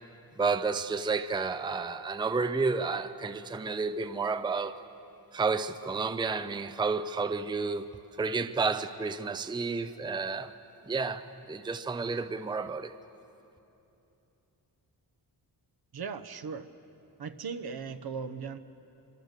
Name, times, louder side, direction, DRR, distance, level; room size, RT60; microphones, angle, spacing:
voice 1, 0.4-4.8 5.3-7.9 8.2-10.5 10.9-12.9, right 4 dB, 10° right, 11 dB, 0.5 m, -31 dB
voice 2, 15.9-16.7 17.2-18.6, right 5 dB, 65° right, 10 dB, 1.0 m, -38 dB
25.5 x 24.0 x 6.7 m, 2.9 s
wide cardioid pair, 145°, 40 cm